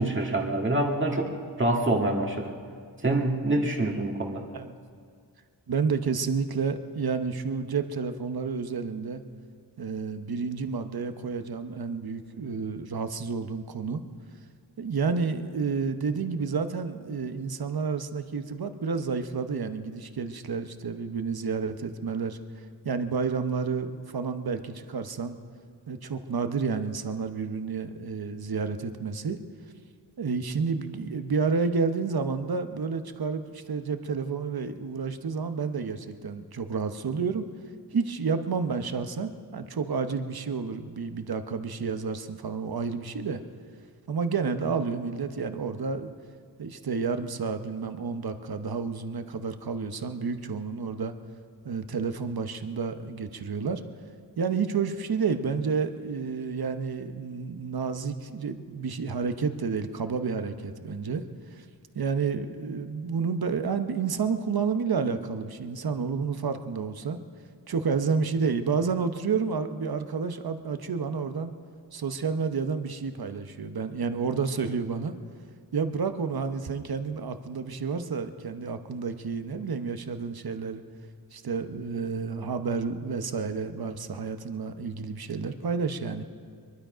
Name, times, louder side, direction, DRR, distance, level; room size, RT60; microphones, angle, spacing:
voice 1, 0.0-2.5 3.0-4.4, right 1 dB, 25° right, 0 dB, 1.9 m, -26 dB
voice 2, 5.7-9.2 9.8-14.0 14.8-22.4 22.8-25.4 25.9-29.4 30.2-37.5 37.9-43.4 44.1-46.1 46.6-51.1 51.6-53.8 54.4-61.2 61.6-61.7 61.9-67.2 67.7-71.5 71.9-75.1 75.7-80.8 81.3-86.2, right 5 dB, 55° right, 9 dB, 1.0 m, -30 dB
23.0 x 12.0 x 5.1 m, 2.1 s
wide cardioid pair, 90°, 43 cm